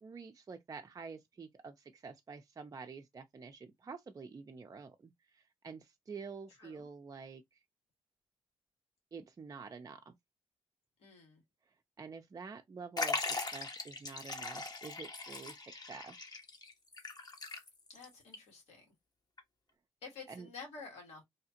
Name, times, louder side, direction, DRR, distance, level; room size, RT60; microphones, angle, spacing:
voice 1, 0.0-7.6 9.1-10.1 12.0-16.4 20.3-20.5, right 5 dB, 35° right, 0.4 m, -48 dB
voice 2, 11.0-11.4 17.9-18.8 20.0-21.2, left 4 dB, 85° left, 1.6 m, -50 dB
Liquid, 13.0-18.0 18.3-18.4 19.4-19.5, left 3 dB, 40° left, 0.9 m, -39 dB
2.8 x 2.4 x 2.8 m
supercardioid pair, 55°, 10 cm